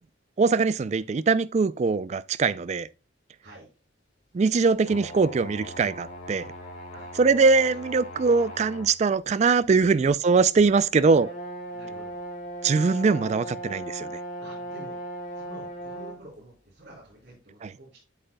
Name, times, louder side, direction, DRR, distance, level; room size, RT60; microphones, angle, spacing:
voice 1, 0.4-2.9 4.3-6.5 7.2-11.3 12.6-14.1 17.6-17.7, right 4 dB, 35° right, 0.3 m, -22 dB
sound 1, 4.8-8.9 9.6-9.7 10.9-16.2, right 1 dB, 40° left, 2.9 m, -38 dB
voice 2, 11.7-12.2 14.4-15.0 15.3-18.0, right 1 dB, 55° right, 3.4 m, -48 dB
8.3 x 7.8 x 2.2 m
head